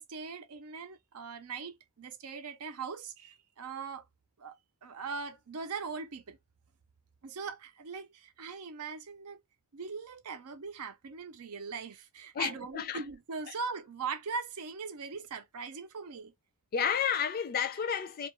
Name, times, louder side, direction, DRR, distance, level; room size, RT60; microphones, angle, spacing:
voice 1, 0.0-4.0 4.4-4.5 4.8-6.4 7.2-9.4 9.7-16.3, right 5 dB, 85° right, 0.6 m, -40 dB
voice 2, 12.3-13.0 16.7-18.3, left 7 dB, 40° left, 0.4 m, -31 dB
2.4 x 2.3 x 3.0 m
head